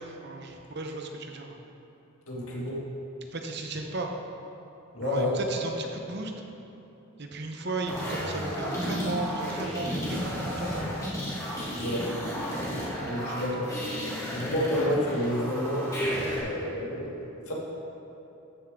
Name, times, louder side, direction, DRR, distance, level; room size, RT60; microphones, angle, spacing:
voice 1, 0.0-1.6 3.3-4.1 5.0-6.3 7.2-10.9 13.2-13.8, right 2 dB, 50° right, 3 dB, 0.8 m, -35 dB
voice 2, 2.3-2.8 4.9-5.3 11.8-12.1 13.0-13.7 14.3-15.9 16.4-17.5, left 1 dB, 80° left, -4 dB, 2.0 m, -29 dB
sound 1, 7.8-16.4, equal, 15° left, 2.0 m, -33 dB
13.5 x 7.2 x 3.7 m, 2.9 s
head